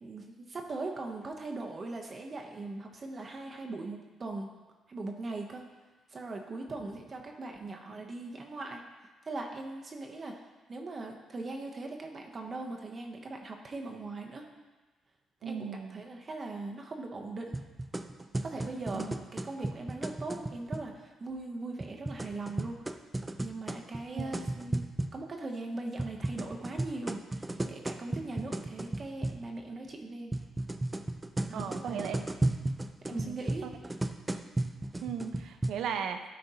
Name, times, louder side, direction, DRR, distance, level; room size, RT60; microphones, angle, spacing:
voice 1, 0.0-4.5 4.9-5.6 6.1-8.8 9.3-10.3 10.7-14.5 15.4-17.6 18.4-19.1 19.3-22.8 23.4-24.8 25.1-27.2 27.7-30.3 31.5-32.3 33.1-33.7, right 2 dB, 40° right, 2 dB, 0.8 m, -40 dB
voice 2, 6.5-6.9 15.4-16.0 18.9-19.2 24.1-24.3 31.5-32.2 33.1-33.7 35.0-36.2, right 7 dB, 80° right, 8 dB, 0.5 m, -37 dB
sound 1, 17.5-20.9 21.8-25.2 26.0-29.5 30.3-35.7, right 2 dB, 15° right, 0.4 m, -35 dB
11.5 x 4.3 x 2.8 m, 1.3 s
cardioid pair, 90°, 0 cm